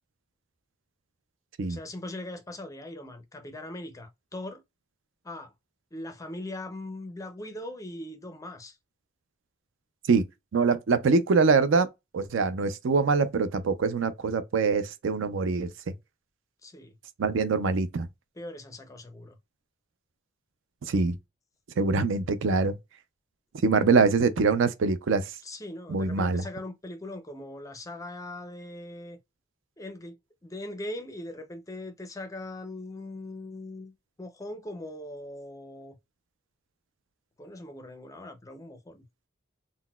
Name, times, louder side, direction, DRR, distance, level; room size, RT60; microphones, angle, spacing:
voice 1, 1.7-4.6 5.2-5.5 5.9-8.8 16.6-17.0 18.4-19.4 25.4-29.2 29.8-36.0 37.4-39.0, left 1 dB, 15° left, 0.4 m, -40 dB
voice 2, 10.5-11.9 12.1-15.7 17.2-18.1 20.9-21.2 21.8-22.7 23.6-25.3 25.9-26.4, right 4 dB, 60° right, 0.4 m, -24 dB
3.9 x 2.1 x 2.2 m
head